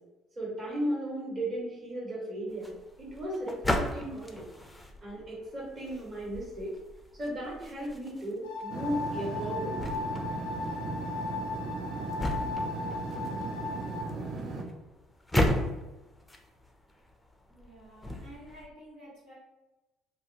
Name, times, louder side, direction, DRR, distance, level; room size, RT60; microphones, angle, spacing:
voice 1, 0.3-2.7 3.0-4.4 5.0-6.7 7.2-9.7, right 1 dB, 40° right, -6 dB, 1.5 m, -35 dB
sound 1, 2.5-18.7, left 1 dB, 10° left, 0.4 m, -36 dB
sound 2, 8.4-14.0, left 3 dB, 85° left, 0.4 m, -36 dB
sound 3, 8.7-14.6, right 3 dB, 55° right, 0.5 m, -37 dB
voice 2, 17.5-19.3, equal, 75° right, -10 dB, 1.4 m, -51 dB
2.7 x 2.2 x 2.6 m, 1.0 s
hypercardioid pair, 55°, 0 cm